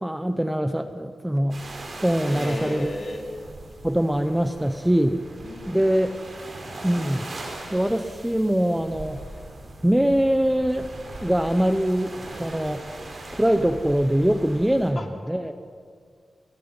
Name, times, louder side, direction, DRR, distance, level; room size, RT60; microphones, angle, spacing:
voice 1, 0.0-1.6 2.0-2.9 3.8-5.2 5.7-6.2 6.8-7.3 7.7-9.2 9.8-10.9 11.2-12.9 13.3-15.5, equal, 5° right, 8 dB, 0.7 m, -23 dB
sound 1, 1.5-14.9, right 2 dB, 40° right, 4.4 m, -40 dB
voice 2, 2.3-3.2 5.4-6.0 14.9-15.0, left 1 dB, 40° left, 2 dB, 2.9 m, -34 dB
30.0 x 22.0 x 5.6 m, 2.1 s
wide cardioid pair, 170°, 0 cm